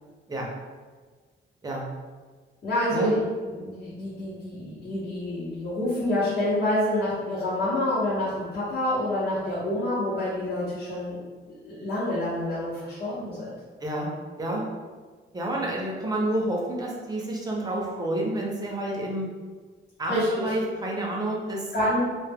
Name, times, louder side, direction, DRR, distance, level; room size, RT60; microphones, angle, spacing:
voice 1, 2.6-11.2 11.6-13.6 20.1-20.5 21.7-22.0, left 1 dB, 50° left, -11 dB, 0.8 m, -27 dB
voice 2, 15.3-19.3 20.0-21.7, right 1 dB, 20° right, -2 dB, 0.5 m, -29 dB
2.2 x 2.1 x 3.4 m, 1.4 s
wide cardioid pair, 150°, 21 cm